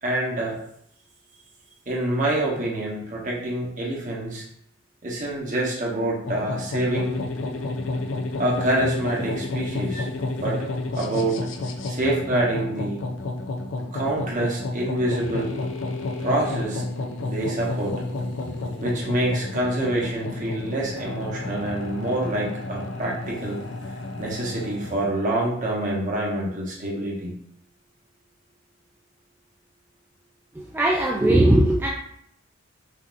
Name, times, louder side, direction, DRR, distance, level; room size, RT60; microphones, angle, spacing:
voice 1, 0.0-0.6 1.9-4.4 5.0-7.2 8.4-10.1 10.4-10.6 11.0-11.4 11.9-13.0 13.9-15.6 16.2-16.8 17.2-17.9 18.8-23.6 24.2-27.3, right 1 dB, 40° right, -3 dB, 1.1 m, -26 dB
sound 1, 6.3-25.1, left 2 dB, 70° left, 0.5 m, -31 dB
voice 2, 30.5-31.9, right 1 dB, 10° right, -3 dB, 0.4 m, -19 dB
5.6 x 2.7 x 2.5 m, 0.73 s
head